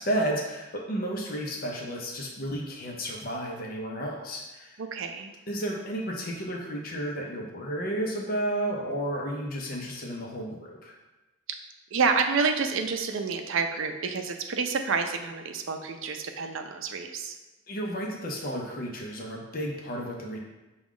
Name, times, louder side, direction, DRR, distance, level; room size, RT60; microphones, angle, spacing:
voice 1, 0.0-4.8 5.5-11.0 17.7-20.4, right 1 dB, 45° left, -1 dB, 0.6 m, -32 dB
voice 2, 4.8-5.3 11.9-17.4, right 5 dB, 70° right, 5 dB, 0.4 m, -28 dB
6.0 x 2.3 x 3.6 m, 1.1 s
head